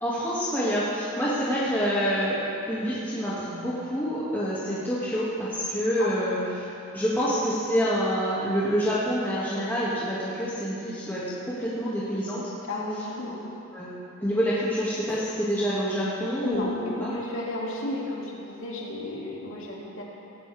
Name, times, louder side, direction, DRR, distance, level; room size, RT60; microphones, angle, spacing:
voice 1, 0.0-6.7 6.9-12.5 13.7-13.9 14.2-17.1, equal, 10° left, -10 dB, 2.5 m, -27 dB
voice 2, 12.6-13.4 16.4-20.0, left 2 dB, 70° left, -4 dB, 2.9 m, -33 dB
18.0 x 17.0 x 3.7 m, 2.7 s
head